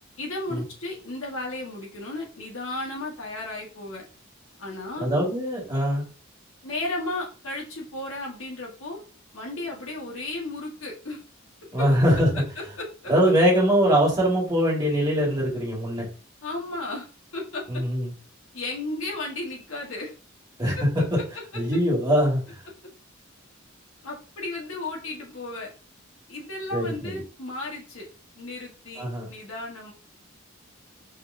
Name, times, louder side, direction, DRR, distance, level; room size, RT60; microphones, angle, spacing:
voice 1, 0.2-4.0 4.6-5.1 6.6-9.0 9.3-11.2 11.8-11.9 12.8-13.1 16.4-17.1 17.3-17.6 18.5-20.1 20.8-20.9 24.0-25.7 26.3-28.1 28.4-29.9, left 2 dB, 85° left, -2 dB, 1.4 m, -34 dB
voice 2, 5.0-6.1 11.7-12.3 13.1-16.1 17.7-18.1 20.6-20.8 21.5-22.4 26.7-27.1 29.0-29.3, equal, 20° right, -4 dB, 1.8 m, -22 dB
4.7 x 3.2 x 2.6 m, 0.36 s
head